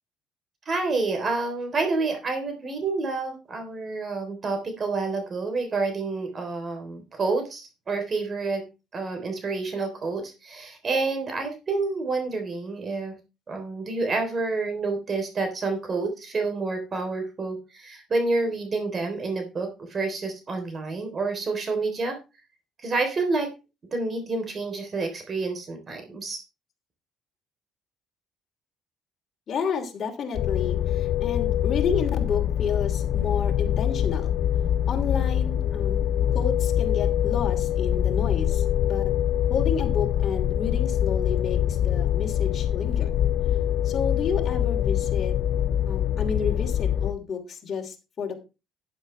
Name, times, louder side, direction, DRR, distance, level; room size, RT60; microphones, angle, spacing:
voice 1, 0.7-8.6 8.9-13.1 13.5-22.2 22.8-23.5 23.9-26.4, right 3 dB, 40° right, 5 dB, 3.6 m, -28 dB
voice 2, 29.5-34.3 34.9-36.0 36.3-39.0 39.5-43.1 43.8-45.4 45.9-48.4, left 6 dB, 45° left, 1 dB, 2.8 m, -31 dB
sound 1, 30.3-47.1, left 10 dB, 65° left, 0.7 m, -24 dB
11.5 x 9.7 x 3.3 m, 0.29 s
supercardioid pair, 80°, 0 cm